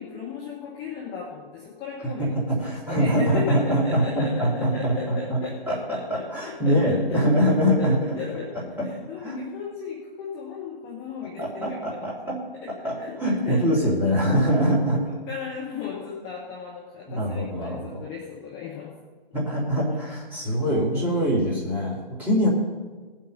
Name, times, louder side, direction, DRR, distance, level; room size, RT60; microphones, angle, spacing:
voice 1, 0.0-7.5 7.8-12.1 12.6-14.1 15.3-18.9 19.4-20.0, left 7 dB, 15° left, -5 dB, 1.5 m, -36 dB
voice 2, 2.0-5.4 5.7-5.8 6.1-8.0 9.2-9.4 11.4-12.4 12.8-15.0 17.1-18.0 19.3-22.5, equal, 5° right, -5 dB, 2.5 m, -23 dB
18.0 x 7.5 x 5.4 m, 1.4 s
figure-of-eight pair, 140°, 31 cm